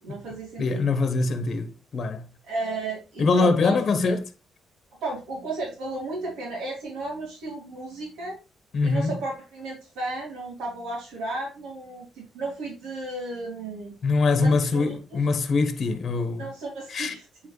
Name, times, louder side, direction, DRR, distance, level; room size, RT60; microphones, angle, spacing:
voice 1, 0.0-0.8 2.4-4.1 5.0-8.4 8.8-13.9 14.4-15.0 16.4-17.2, right 2 dB, 90° right, 3.5 m, -34 dB
voice 2, 0.6-2.2 3.2-4.3 8.7-9.1 14.0-16.5 16.9-17.1, left 3 dB, 50° left, 1.0 m, -23 dB
8.9 x 4.7 x 3.1 m
cardioid pair, 90°, 0 cm